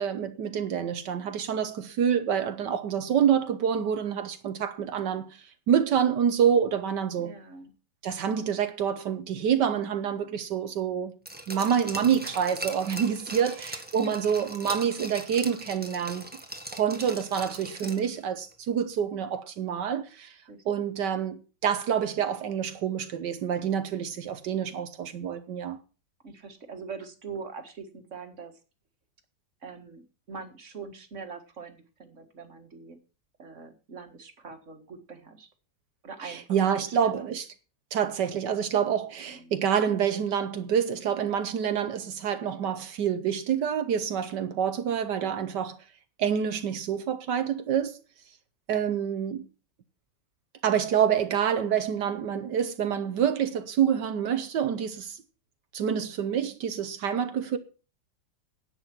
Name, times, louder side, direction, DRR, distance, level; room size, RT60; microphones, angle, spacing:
voice 1, 0.0-7.3 8.0-11.1 11.5-16.3 16.7-20.4 20.6-25.8 36.2-37.5 37.9-45.8 46.2-48.0 48.7-49.4 50.6-55.2 55.7-57.6, right 8 dB, 75° right, 1.6 m, -27 dB
voice 2, 7.2-7.7 13.3-13.4 13.9-14.3 17.8-18.1 20.5-20.9 26.2-28.5 29.6-30.0 30.3-33.0 33.4-35.5 36.0-36.4 36.7-37.2 39.3-39.5, right 5 dB, 45° right, 2.0 m, -43 dB
Glass, 11.3-18.2 18.5-18.6, right 1 dB, 5° right, 1.5 m, -40 dB
10.5 x 8.9 x 6.0 m
omnidirectional pair, 1.9 m